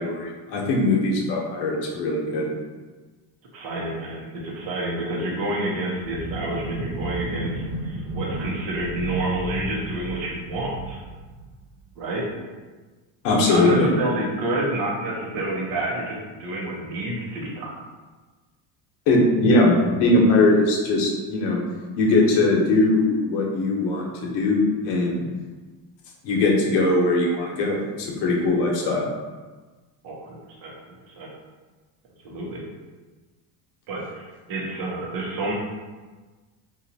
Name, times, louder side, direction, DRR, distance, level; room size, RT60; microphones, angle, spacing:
voice 1, 0.0-2.5 13.2-13.9 19.1-21.6 22.0-25.2 26.2-29.1, left 2 dB, 65° left, -1 dB, 0.9 m, -20 dB
voice 2, 3.5-11.0 12.0-12.3 13.4-17.7 30.0-31.3 32.2-32.7 33.9-35.5, right 1 dB, 50° right, -3 dB, 0.8 m, -29 dB
sound 1, 6.0-11.9, right 1 dB, 90° right, 1.1 m, -33 dB
2.8 x 2.4 x 4.0 m, 1.3 s
cardioid pair, 170°, 44 cm